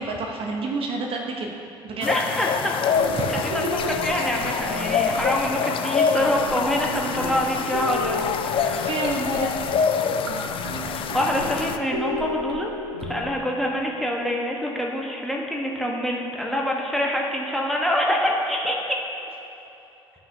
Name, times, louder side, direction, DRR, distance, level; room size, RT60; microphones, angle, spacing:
voice 1, 0.0-1.6 1.8-2.1 3.2-3.5 8.8-9.8, right 3 dB, 45° right, 1 dB, 0.8 m, -29 dB
sound 1, 2.0-11.8, left 6 dB, 40° left, 0.4 m, -26 dB
voice 2, 2.0-2.7 3.3-3.7 4.0-8.2 8.5-8.9 10.8-12.7 13.0-18.8, equal, ahead, -2 dB, 1.2 m, -26 dB
sound 2, 3.0-13.2, left 1 dB, 85° right, 0.6 m, -34 dB
sound 3, 3.8-13.6, left 4 dB, 85° left, 0.7 m, -40 dB
12.5 x 5.7 x 2.7 m, 2.9 s
figure-of-eight pair, 50°, 13 cm